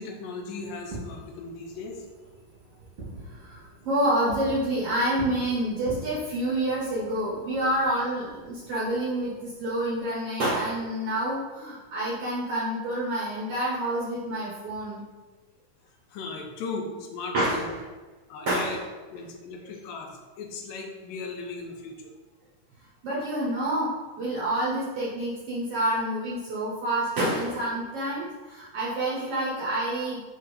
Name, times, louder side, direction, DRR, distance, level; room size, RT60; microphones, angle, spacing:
voice 1, 0.0-2.0 16.1-17.7 18.3-18.8 19.1-20.1 20.4-22.1, left 3 dB, 85° left, 1 dB, 2.4 m, -37 dB
Fireworks, 0.7-10.0, right 2 dB, 40° right, 2.2 m, -45 dB
voice 2, 3.3-15.0 17.3-17.7 18.5-18.8 23.0-30.2, right 1 dB, 60° right, -7 dB, 1.7 m, -28 dB
5.2 x 3.7 x 4.9 m, 1.3 s
omnidirectional pair, 3.9 m